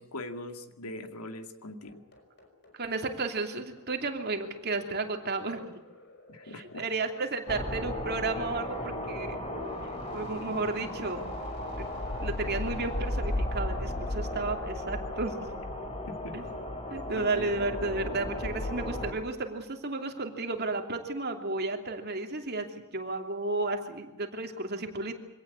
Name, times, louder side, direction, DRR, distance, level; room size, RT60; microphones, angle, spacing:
voice 1, 0.0-2.0 6.3-6.8 16.1-16.4 17.2-17.5, left 1 dB, 85° left, 7 dB, 2.3 m, -41 dB
sound 1, 1.8-14.4, left 2 dB, 50° left, 5.8 m, -56 dB
voice 2, 2.7-5.8 6.4-9.4 10.1-11.3 11.8-11.9 12.2-15.6 16.3-16.4 16.9-25.1, right 3 dB, 45° right, 4 dB, 2.9 m, -33 dB
sound 2, 7.5-19.1, left 1 dB, 25° left, 3.8 m, -35 dB
25.0 x 17.5 x 8.4 m, 1.1 s
head